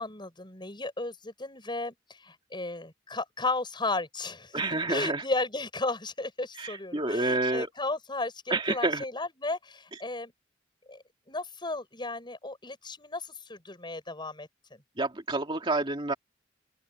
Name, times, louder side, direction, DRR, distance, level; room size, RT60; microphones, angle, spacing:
voice 1, 0.0-4.6 4.9-10.3 10.9-14.8, left 2 dB, 25° left, 7.3 m, -34 dB
voice 2, 4.5-5.2 6.6-7.7 8.5-9.0 15.0-16.1, right 2 dB, 30° right, 2.4 m, -28 dB
open air
head